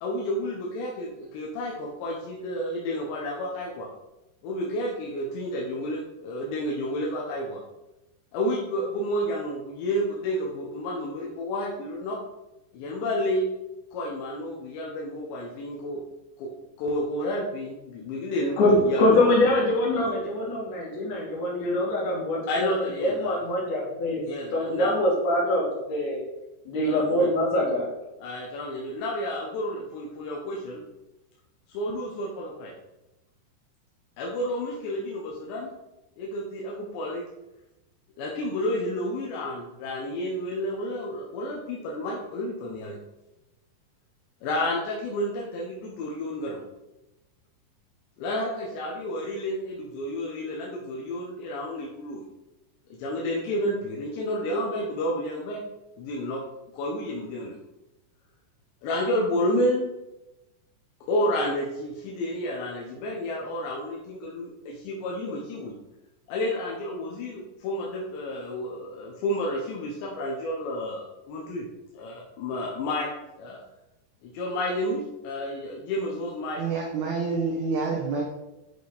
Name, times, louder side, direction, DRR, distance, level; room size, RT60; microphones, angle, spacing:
voice 1, 0.0-3.9 4.4-7.6 8.3-12.2 12.7-13.5 13.9-16.0 16.4-16.5 16.8-19.3 22.5-23.4 24.2-25.1 26.8-27.3 28.2-30.8 31.7-32.7 34.2-35.7 36.2-37.2 38.2-43.0 44.4-46.6 48.2-52.3 53.0-55.6 56.0-56.4 56.7-57.6 58.8-59.9 61.1-65.7 66.3-71.7 71.9-73.6 74.2-76.6, left 1 dB, 85° left, -3 dB, 3.3 m, -30 dB
voice 2, 18.6-24.2 24.5-26.2 26.7-27.9, left 1 dB, 50° left, -5 dB, 3.4 m, -24 dB
voice 3, 76.6-78.2, right 4 dB, 70° right, -2 dB, 1.8 m, -27 dB
8.4 x 5.6 x 4.0 m, 0.96 s
omnidirectional pair, 4.9 m